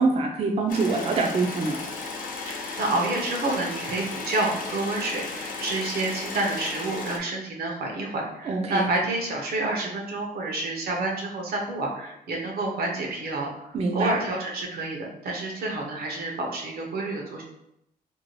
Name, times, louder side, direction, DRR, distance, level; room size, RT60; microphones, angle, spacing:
voice 1, 0.0-1.8 8.5-8.9 13.7-14.1, right 3 dB, 40° right, 0 dB, 0.4 m, -24 dB
sound 1, 0.7-7.2, left 4 dB, 65° left, 0.5 m, -35 dB
voice 2, 2.5-17.4, right 2 dB, 80° right, 0 dB, 0.7 m, -29 dB
2.6 x 2.1 x 3.1 m, 0.81 s
cardioid pair, 120°, 16 cm